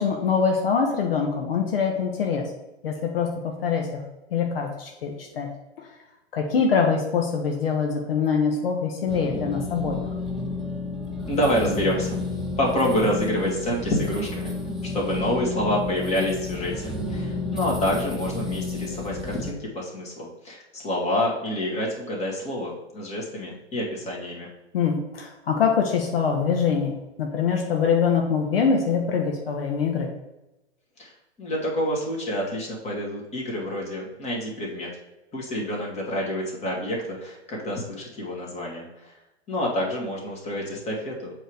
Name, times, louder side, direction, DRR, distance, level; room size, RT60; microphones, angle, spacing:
voice 1, 0.0-2.4 2.8-4.0 4.3-5.5 5.8-5.9 6.3-10.0 24.7-30.1, left 6 dB, 60° left, 1 dB, 1.2 m, -24 dB
sound 1, 9.1-19.5, left 2 dB, ahead, 0.7 m, -31 dB
voice 2, 11.3-12.2 12.6-14.5 14.9-24.5 31.0-31.1 31.4-34.9 35.3-39.1 39.5-41.3, left 1 dB, 20° left, -2 dB, 2.2 m, -27 dB
7.8 x 3.2 x 5.0 m, 0.96 s
figure-of-eight pair, 105°, 33 cm